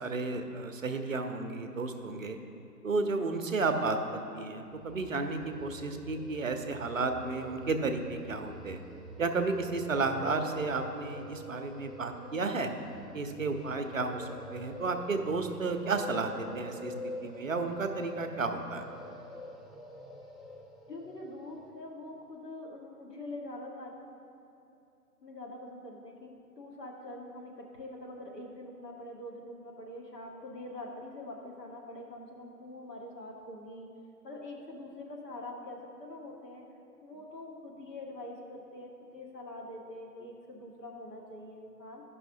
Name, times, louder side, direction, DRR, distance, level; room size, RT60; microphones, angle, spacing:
voice 1, 0.0-2.4 2.8-8.8 9.2-12.7 13.1-18.8, right 3 dB, 55° right, 6 dB, 0.6 m, -32 dB
sound 1, 4.7-21.7, equal, ahead, 0.3 m, -46 dB
voice 2, 20.9-24.1 25.2-33.9 34.2-36.6 37.0-42.0, left 1 dB, 80° left, -1 dB, 1.5 m, -44 dB
12.5 x 5.6 x 2.7 m, 2.7 s
figure-of-eight pair, 155°, 48 cm